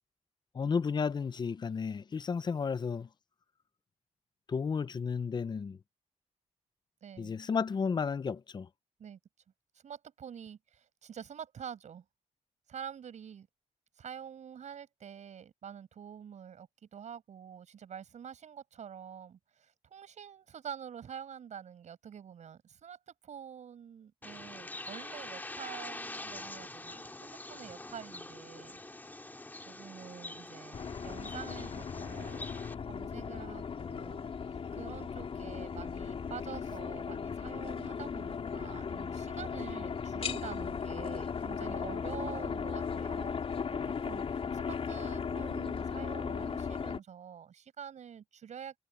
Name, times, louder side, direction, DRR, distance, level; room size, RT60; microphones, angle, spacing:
voice 1, 0.5-3.1 4.5-5.8 7.2-8.7, left 5 dB, 35° left, 0.6 m, -32 dB
voice 2, 7.0-7.4 9.0-9.2 9.8-12.0 12.7-13.5 14.0-28.8 29.7-30.8 31.0-32.5 32.9-34.3 34.7-48.7, right 8 dB, 70° right, 6.9 m, -47 dB
Bird, 24.2-32.7, left 2 dB, 15° left, 2.4 m, -45 dB
sound 1, 30.7-47.0, left 6 dB, 50° left, 4.5 m, -37 dB
wide cardioid pair, 125°, 12 cm